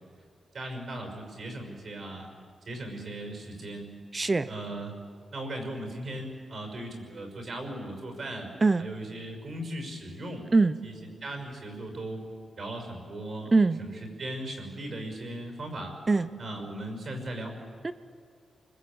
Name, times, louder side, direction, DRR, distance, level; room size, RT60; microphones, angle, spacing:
voice 1, 0.5-2.3 2.6-3.9 4.5-4.9 5.3-8.5 8.8-10.5 10.8-10.9 11.2-12.2 12.5-13.5 13.8-15.9 16.4-17.5, right 1 dB, 50° right, 4 dB, 5.9 m, -38 dB
voice 2, 4.1-4.5 8.6-8.9 10.5-10.8 13.5-13.8 16.1-16.3 17.8-17.9, right 3 dB, 25° right, 13 dB, 0.8 m, -22 dB
29.0 x 21.0 x 8.8 m, 2.2 s
wide cardioid pair, 140°, 0 cm